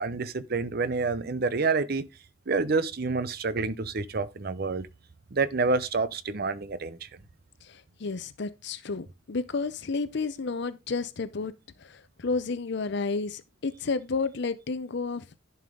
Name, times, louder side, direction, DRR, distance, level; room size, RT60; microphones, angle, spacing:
voice 1, 0.0-2.1 2.5-4.9 5.3-7.1, right 4 dB, 50° right, 0.7 m, -28 dB
voice 2, 7.6-11.5 11.8-15.2, left 4 dB, 55° left, 0.6 m, -31 dB
11.0 x 5.5 x 3.7 m
head